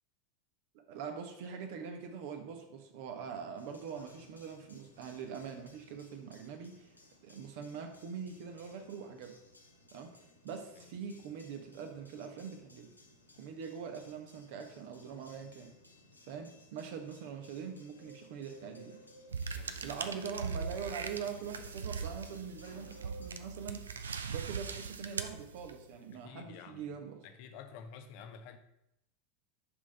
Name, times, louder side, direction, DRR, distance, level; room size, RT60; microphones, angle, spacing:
voice 1, 0.9-6.9 7.2-9.3 9.9-10.1 10.4-12.9 13.4-15.7 16.3-19.0 19.8-23.8 24.3-27.2, right 6 dB, 55° right, 4 dB, 1.1 m, -43 dB
sound 1, 3.6-23.3, equal, 85° left, 0.8 m, -59 dB
sound 2, 19.3-26.0, right 5 dB, 75° right, 0.4 m, -40 dB
voice 2, 19.5-19.8 26.1-26.9 27.2-28.6, left 6 dB, 50° left, 8 dB, 0.7 m, -50 dB
6.6 x 3.7 x 5.4 m, 0.83 s
figure-of-eight pair, 80°, 0 cm